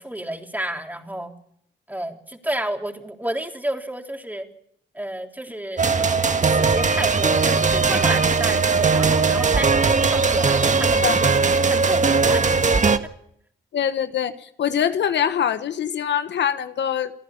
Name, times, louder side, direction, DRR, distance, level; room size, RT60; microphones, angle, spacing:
voice 1, 0.0-1.3 1.9-4.5 4.9-5.8 6.4-11.3 11.7-12.5 12.8-12.9, right 1 dB, 10° right, 3 dB, 3.6 m, -31 dB
sound 1, 5.8-13.0, right 4 dB, 40° right, 1.5 m, -19 dB
voice 2, 13.7-17.1, left 9 dB, 75° left, 10 dB, 1.3 m, -23 dB
29.0 x 10.5 x 8.7 m, 0.70 s
supercardioid pair, 50°, 19 cm